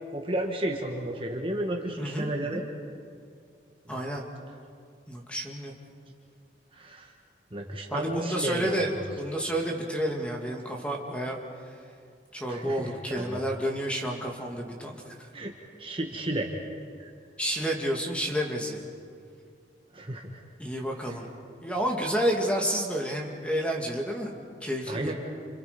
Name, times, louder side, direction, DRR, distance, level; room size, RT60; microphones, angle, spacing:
voice 1, 0.1-2.6 6.8-7.1 7.5-9.0 12.5-13.4 15.3-15.5 15.8-16.5 17.0-17.1 19.9-20.4 24.9-25.1, right 1 dB, 30° right, 1 dB, 1.7 m, -32 dB
voice 2, 2.0-2.6 3.9-4.2 5.1-5.7 7.9-8.9 9.2-11.7 12.3-15.2 17.4-18.8 20.6-21.3 21.6-25.1, equal, 5° left, 0 dB, 2.4 m, -30 dB
29.5 x 27.5 x 5.3 m, 2.3 s
head